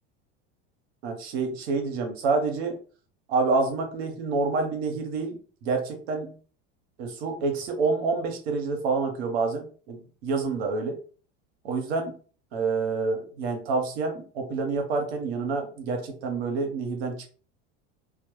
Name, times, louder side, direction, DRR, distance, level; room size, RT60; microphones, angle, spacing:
voice 1, 1.0-2.8 3.3-6.3 7.0-11.0 11.6-12.2 12.5-17.3, right 4 dB, 85° right, 3 dB, 0.8 m, -28 dB
2.1 x 2.0 x 2.9 m, 0.40 s
supercardioid pair, 100°, 31 cm